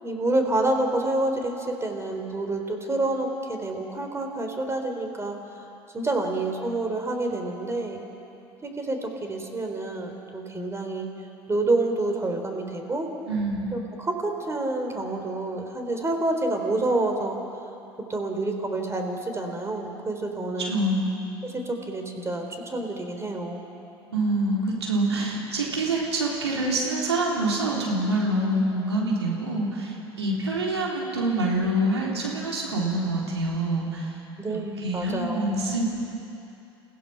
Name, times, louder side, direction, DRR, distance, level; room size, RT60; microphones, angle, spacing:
voice 1, 0.0-5.4 5.9-8.0 8.6-11.1 11.5-13.1 13.7-17.4 18.1-20.7 21.4-23.6 34.4-35.6, right 2 dB, 20° right, 4 dB, 3.6 m, -28 dB
voice 2, 13.3-13.7 20.6-21.2 24.1-34.2 34.5-35.8, right 1 dB, 90° right, -3 dB, 3.6 m, -26 dB
29.0 x 16.0 x 5.9 m, 2.8 s
hypercardioid pair, 70°, 14 cm